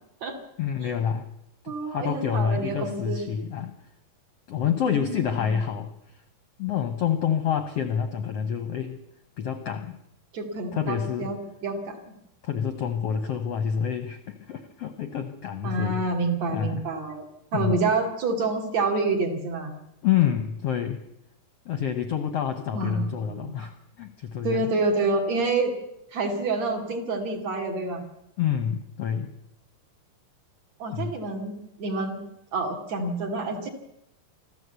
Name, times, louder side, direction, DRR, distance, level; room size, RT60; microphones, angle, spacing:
voice 1, 0.6-1.3 1.6-3.8 4.5-6.2 6.6-9.0 9.4-10.0 10.7-11.3 12.4-16.0 16.5-16.9 17.5-17.8 20.0-21.0 21.6-24.6 28.4-29.3 30.9-31.1, left 8 dB, 65° left, 8 dB, 1.6 m, -28 dB
voice 2, 1.7-3.2 4.9-5.6 10.3-11.4 11.6-12.1 15.6-17.2 17.5-19.8 22.7-23.6 24.4-25.7 26.1-28.0 30.8-32.2 32.5-33.7, right 3 dB, 50° right, 3 dB, 3.6 m, -28 dB
25.5 x 14.5 x 8.2 m, 0.83 s
omnidirectional pair, 4.1 m